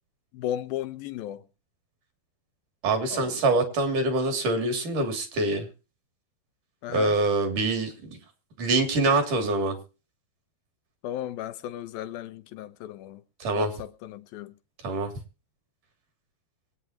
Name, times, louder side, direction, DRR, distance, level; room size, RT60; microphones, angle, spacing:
voice 1, 0.3-1.4 3.1-3.3 6.8-7.1 11.0-13.2 13.6-14.5, left 11 dB, 75° left, 2.7 m, -35 dB
voice 2, 2.8-5.7 6.9-7.9 8.6-9.8 13.4-13.8 14.8-15.1, right 2 dB, 55° right, 4.2 m, -25 dB
24.0 x 9.6 x 2.9 m
omnidirectional pair, 4.5 m